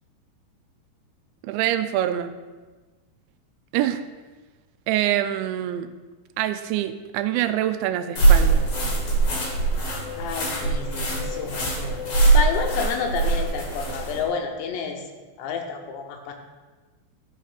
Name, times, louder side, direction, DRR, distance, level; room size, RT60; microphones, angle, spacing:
voice 1, 1.4-2.4 3.7-4.0 4.9-5.9 6.4-8.7, right 12 dB, 85° right, 10 dB, 2.8 m, -25 dB
sound 1, 8.2-14.2, right 3 dB, 45° left, 2.3 m, -22 dB
voice 2, 10.2-15.0 15.4-16.3, left 5 dB, 80° left, 4 dB, 3.0 m, -30 dB
13.5 x 5.4 x 5.0 m, 1.3 s
omnidirectional pair, 5.3 m